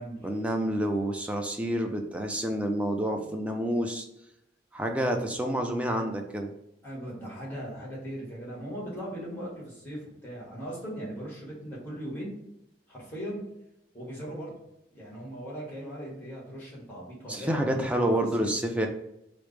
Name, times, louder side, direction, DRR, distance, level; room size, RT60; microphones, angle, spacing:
voice 1, 0.2-4.1 4.7-6.5 17.3-18.9, right 1 dB, 5° right, 3 dB, 0.4 m, -28 dB
voice 2, 6.8-12.3 12.9-13.4 13.9-14.5 14.9-18.1 18.4-18.5, equal, 10° left, -4 dB, 1.4 m, -39 dB
4.7 x 2.0 x 3.2 m, 0.85 s
head